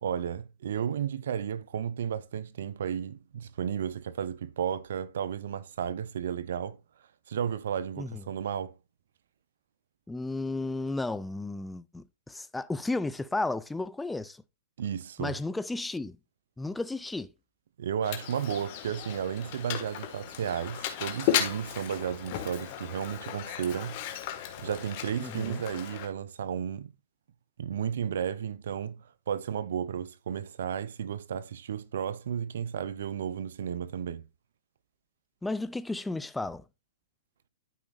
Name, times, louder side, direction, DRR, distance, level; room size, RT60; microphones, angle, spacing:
voice 1, 0.0-6.8 7.3-8.7 14.8-15.4 17.8-24.0 24.6-26.9 27.6-34.3, right 8 dB, 70° right, 0.5 m, -33 dB
voice 2, 10.1-14.4 15.2-16.2 16.6-17.3 25.2-25.6 35.4-36.6, left 2 dB, 5° left, 0.4 m, -33 dB
Mechanisms, 18.0-26.1, left 10 dB, 45° left, 1.5 m, -35 dB
12.0 x 5.0 x 2.4 m
hypercardioid pair, 130°, 0 cm